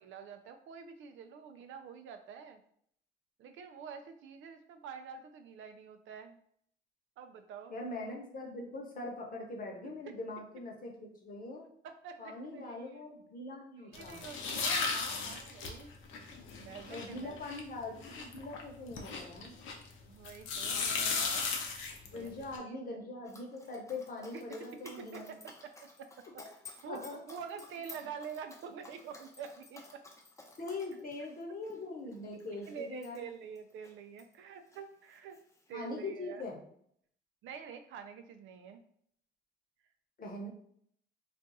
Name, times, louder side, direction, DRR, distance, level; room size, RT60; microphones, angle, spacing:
voice 1, 0.0-2.6 3.4-6.4 7.2-7.7 11.8-13.0 13.8-15.9 16.6-17.4 20.1-21.5 22.1-22.3 22.6-23.0 24.3-24.4 25.0-25.5 26.0-26.4 26.8-30.0 32.7-35.4 35.7-36.5 37.4-38.8, right 6 dB, 80° right, 7 dB, 0.4 m, -47 dB
voice 2, 7.7-11.6 12.2-14.2 15.1-15.4 16.9-19.6 20.6-21.2 22.0-25.4 26.4-26.5 26.8-27.2 30.6-33.3 35.7-36.6 40.2-40.5, left 2 dB, 45° left, 0 dB, 1.0 m, -42 dB
sound 1, 13.9-19.9 20.3-22.6, left 4 dB, 85° left, 0.6 m, -36 dB
Dog, 23.2-34.3 34.7-35.7, left 2 dB, 15° left, 0.6 m, -55 dB
2.5 x 2.3 x 4.0 m, 0.66 s
cardioid pair, 90°, 20 cm